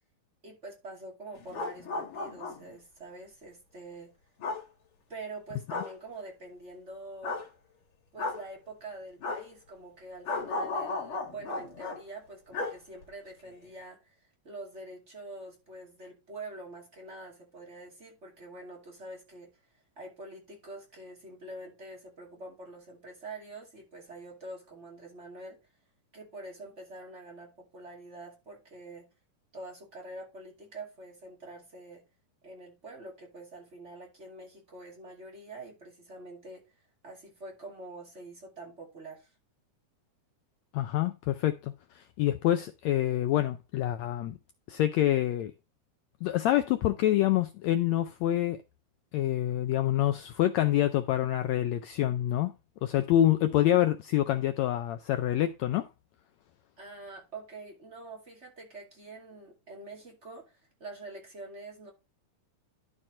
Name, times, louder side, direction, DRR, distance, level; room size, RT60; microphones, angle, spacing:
voice 1, 0.4-4.1 5.1-7.4 8.1-14.2 14.4-19.5 20.0-25.6 26.1-29.1 29.5-32.0 32.4-36.6 37.0-39.3 56.8-61.9, right 2 dB, 25° right, 2.5 m, -45 dB
sound 1, 1.4-2.8 4.4-4.6 5.7-5.9 7.2-7.4 8.2-8.4 9.2-9.4 10.3-12.0 12.5-12.7 13.0-13.1, left 3 dB, 45° left, 2.7 m, -34 dB
voice 2, 40.7-44.4 44.7-45.5 46.2-48.6 49.1-52.5 52.8-55.9, left 13 dB, 85° left, 1.6 m, -26 dB
12.0 x 4.3 x 4.4 m
omnidirectional pair, 3.7 m